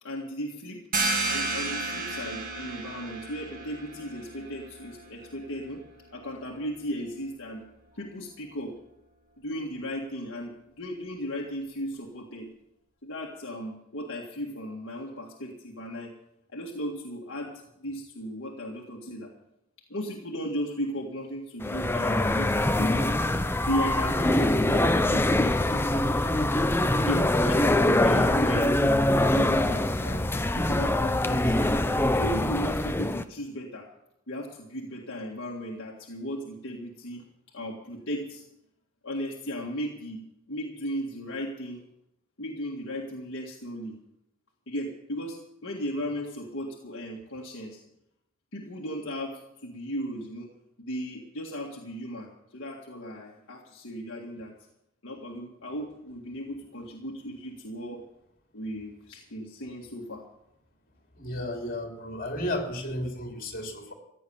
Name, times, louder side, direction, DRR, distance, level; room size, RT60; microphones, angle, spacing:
voice 1, 0.0-0.8 1.3-5.8 6.1-7.6 7.9-8.7 9.4-12.5 13.0-16.1 16.5-19.3 19.9-23.1 23.6-26.5 27.0-31.7 32.1-33.9 34.3-37.2 37.5-38.4 39.0-40.2 40.5-41.8 42.4-43.9 44.7-47.8 48.5-50.5 50.8-54.5 55.0-58.0 58.5-60.3, equal, 55° left, -2 dB, 1.9 m, -36 dB
sound 1, 0.9-6.3, right 3 dB, 40° right, 2.0 m, -33 dB
sound 2, 21.6-33.2, left 1 dB, 10° left, 0.6 m, -24 dB
voice 2, 61.1-63.9, left 1 dB, 40° left, 2 dB, 3.4 m, -33 dB
15.5 x 10.0 x 7.2 m, 0.83 s
head